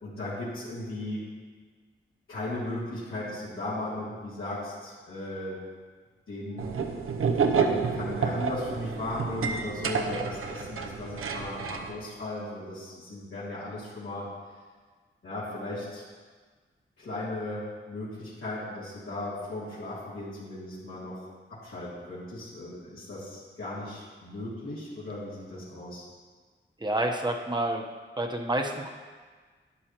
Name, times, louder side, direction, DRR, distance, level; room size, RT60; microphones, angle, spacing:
voice 1, 0.0-1.2 2.3-5.6 6.3-6.7 7.5-14.3 15.2-16.0 17.0-21.2 21.5-26.1, left 1 dB, 80° left, -11 dB, 3.0 m, -36 dB
sound 1, 6.6-11.9, right 5 dB, 90° right, 0.7 m, -29 dB
voice 2, 26.8-27.8 28.2-28.9, right 1 dB, 20° right, 2 dB, 1.0 m, -28 dB
11.5 x 9.5 x 3.0 m, 1.5 s
wide cardioid pair, 95°, 21 cm